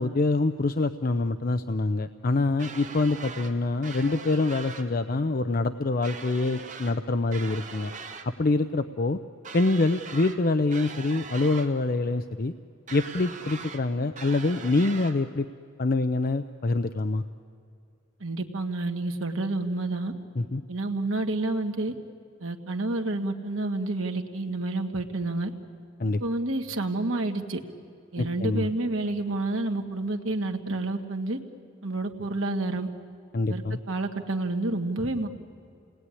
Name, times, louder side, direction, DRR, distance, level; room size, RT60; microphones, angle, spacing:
voice 1, 0.0-7.9 8.4-9.2 9.5-12.5 12.9-15.5 15.8-17.2 20.4-20.6 26.0-26.2 28.2-28.7 33.3-33.8, left 2 dB, 45° left, 9 dB, 0.6 m, -25 dB
sound 1, 2.6-3.5 3.8-4.9 6.0-7.0 7.3-8.3 9.4-10.4 10.7-11.7 12.9-13.8 14.2-15.1, right 5 dB, 40° right, 1.8 m, -41 dB
voice 2, 18.2-20.1 20.7-21.9 22.4-25.5 26.2-27.6 28.1-31.4 31.8-32.9 33.5-35.3, right 2 dB, 85° right, 4 dB, 1.8 m, -29 dB
29.0 x 19.5 x 9.8 m, 2.4 s
head